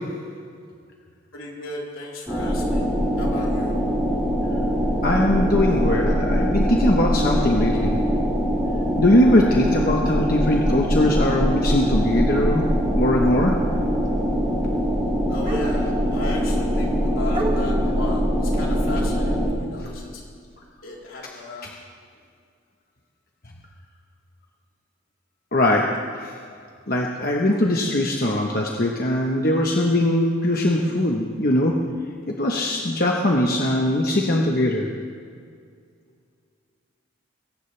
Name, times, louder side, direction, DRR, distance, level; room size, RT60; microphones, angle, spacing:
voice 1, 1.3-3.8 15.3-20.2 20.8-21.7, left 2 dB, 75° left, -4 dB, 3.9 m, -36 dB
sound 1, 2.3-19.5, equal, ahead, 5.3 m, -22 dB
voice 2, 5.0-8.0 9.0-13.6 21.6-21.7 25.5-26.3 26.9-31.8 32.3-34.9, left 1 dB, 45° left, 0 dB, 1.1 m, -21 dB
sound 2, 8.3-8.4 9.9-10.0 11.0-11.2 13.7-13.8 15.4-16.2 16.9-17.0 17.3-18.1, right 2 dB, 25° right, 1.6 m, -31 dB
22.0 x 17.5 x 3.4 m, 2.2 s
head